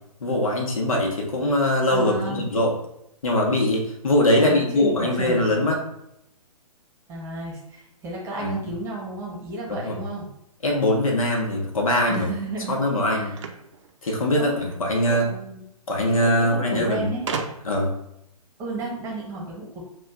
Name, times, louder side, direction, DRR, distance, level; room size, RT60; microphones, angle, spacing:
voice 1, 0.2-2.7 3.2-5.8 8.4-8.5 9.7-9.9 10.6-12.3 12.7-13.4 14.0-15.3 15.9-17.1 17.6-17.9, left 1 dB, 60° left, 0 dB, 1.2 m, -22 dB
voice 2, 1.9-2.5 4.4-5.5 7.1-10.3 12.1-12.8 13.1-13.3 14.4-14.5 14.9-15.6 16.1-17.3 18.6-19.8, right 2 dB, 15° right, -3 dB, 1.0 m, -33 dB
sound 1, 13.3-14.8 15.9-16.0 16.2-16.3 17.3-17.9, right 5 dB, 50° right, 0.6 m, -33 dB
7.4 x 2.5 x 2.4 m, 0.78 s
figure-of-eight pair, 125°, 20 cm